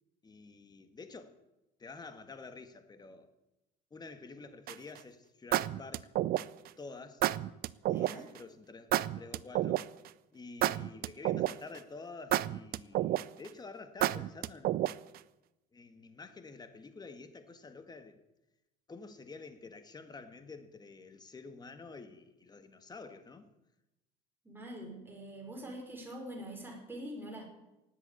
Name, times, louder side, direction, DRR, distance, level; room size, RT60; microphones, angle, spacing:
voice 1, 0.2-1.4 1.8-3.3 3.9-6.1 6.8-7.3 7.9-9.9 10.3-14.8 15.7-18.2 18.9-23.5, left 4 dB, 20° left, 1.7 m, -49 dB
sound 1, 4.7-5.0 5.5-6.7 7.2-8.1 8.9-10.1 10.6-11.8 12.3-13.5 14.0-15.2, right 14 dB, 60° right, 0.6 m, -30 dB
voice 2, 7.9-8.2 24.4-27.5, right 1 dB, 10° right, 5.2 m, -44 dB
18.5 x 8.5 x 8.4 m
cardioid pair, 115°, 18 cm